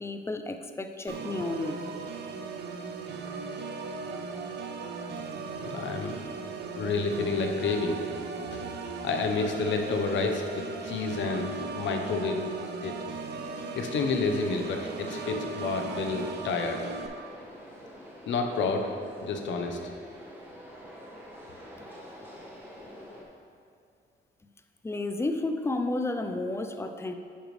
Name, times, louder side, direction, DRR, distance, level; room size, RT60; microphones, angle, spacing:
voice 1, 0.0-1.8 21.8-21.9 24.8-27.1, left 2 dB, 15° left, 7 dB, 0.5 m, -32 dB
Organ, 1.1-17.1, right 4 dB, 60° right, 0.7 m, -38 dB
voice 2, 5.6-6.2 6.7-8.0 8.5-8.6 9.0-12.4 12.8-13.0 13.7-16.8 18.3-18.9 19.2-19.8, left 4 dB, 70° left, 4 dB, 0.9 m, -29 dB
sound 1, 14.4-23.2, equal, 10° right, 1.4 m, -47 dB
10.0 x 5.0 x 3.2 m, 2.3 s
cardioid pair, 90°, 20 cm